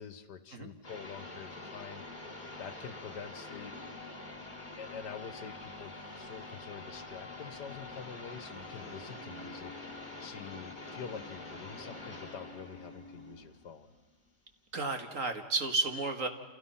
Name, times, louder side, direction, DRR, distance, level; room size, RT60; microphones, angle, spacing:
voice 1, 0.0-2.0 2.6-3.7 4.8-9.8 10.2-13.9, left 7 dB, 75° left, 12 dB, 1.7 m, -46 dB
sound 1, 0.8-14.3, left 2 dB, 25° left, 2.9 m, -46 dB
sound 2, 1.7-13.4, left 2 dB, 5° left, 6.2 m, -56 dB
voice 2, 14.7-16.3, right 3 dB, 50° right, 6 dB, 2.0 m, -32 dB
29.5 x 27.5 x 5.7 m, 1.2 s
omnidirectional pair, 1.8 m